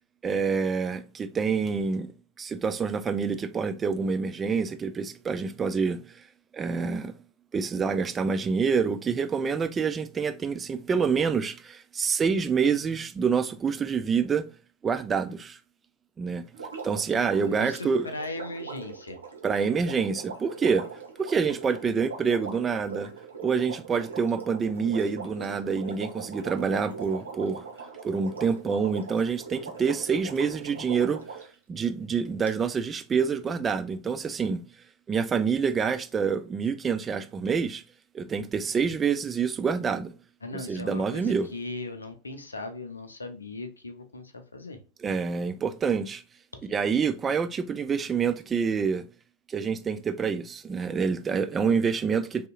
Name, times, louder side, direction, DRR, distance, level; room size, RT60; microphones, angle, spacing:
voice 1, 0.2-2.1 2.4-6.2 6.5-7.1 7.5-14.5 14.8-15.6 16.2-16.4 16.8-18.1 19.4-20.9 21.2-23.1 23.4-27.7 28.0-31.3 31.7-34.6 35.1-37.8 38.1-40.1 40.5-41.5 45.0-46.2 46.6-49.0 49.5-52.5, right 5 dB, 20° right, 0.3 m, -27 dB
Water, 16.5-31.5 32.5-32.6, right 5 dB, 70° right, 0.8 m, -40 dB
voice 2, 17.6-19.2 40.4-44.8, left 2 dB, 75° left, 0.5 m, -38 dB
3.5 x 2.7 x 2.3 m
figure-of-eight pair, 90°, 0 cm